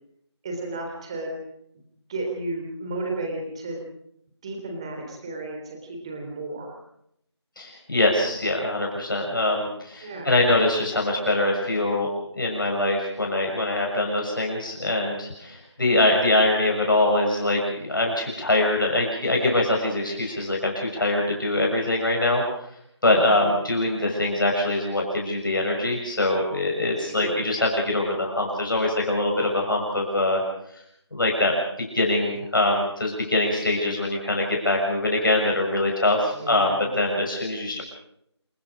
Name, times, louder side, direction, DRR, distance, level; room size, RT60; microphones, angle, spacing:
voice 1, 0.4-1.3 2.1-3.8 4.4-6.7 10.0-10.3 23.1-23.5 27.1-27.4 36.3-36.9, right 2 dB, 10° right, 2 dB, 3.3 m, -33 dB
voice 2, 7.6-12.1 12.4-22.4 23.0-30.4 31.1-31.5 31.8-37.8, left 2 dB, 45° left, 0 dB, 6.8 m, -23 dB
28.0 x 20.5 x 5.1 m, 0.73 s
figure-of-eight pair, 175°, 15 cm